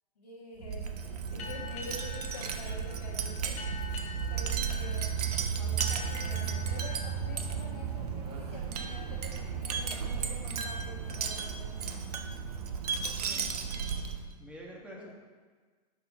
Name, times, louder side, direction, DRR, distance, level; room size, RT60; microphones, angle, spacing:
voice 1, 0.1-3.6 4.3-5.1 5.6-12.1 13.2-13.5 14.9-15.1, left 2 dB, 90° left, -2 dB, 1.5 m, -47 dB
Wind chime, 0.6-14.3, right 6 dB, 80° right, 0.7 m, -34 dB
sound 1, 1.4-8.7, left 6 dB, 35° left, 0.9 m, -46 dB
sound 2, 8.2-8.7 11.0-11.7, right 3 dB, 35° right, 0.8 m, -53 dB
voice 2, 13.2-13.9 14.4-15.1, equal, 5° right, -3 dB, 1.5 m, -48 dB
6.0 x 5.7 x 3.6 m, 1.5 s
hypercardioid pair, 105°, 20 cm